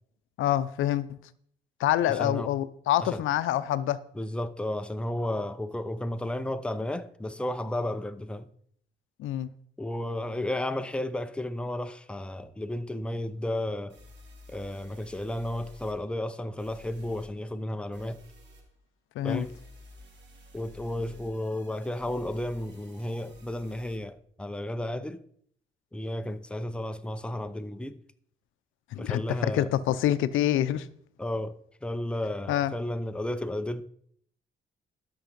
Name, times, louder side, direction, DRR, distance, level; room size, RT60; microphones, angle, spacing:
voice 1, 0.4-1.2 1.8-4.0 9.2-9.5 19.2-19.4 28.9-30.9 32.5-32.7, left 12 dB, 85° left, 0.6 m, -26 dB
voice 2, 2.1-2.5 3.0-3.2 4.1-8.5 9.8-14.0 14.5-18.2 19.2-19.5 20.5-25.2 25.9-28.0 29.0-29.7 31.2-33.8, left 1 dB, 5° left, 0.7 m, -33 dB
sound 1, 13.9-15.9 16.6-17.3 17.9-18.6 19.3-24.0, left 1 dB, 60° right, 3.4 m, -52 dB
13.0 x 6.1 x 5.2 m
cardioid pair, 90°, 20 cm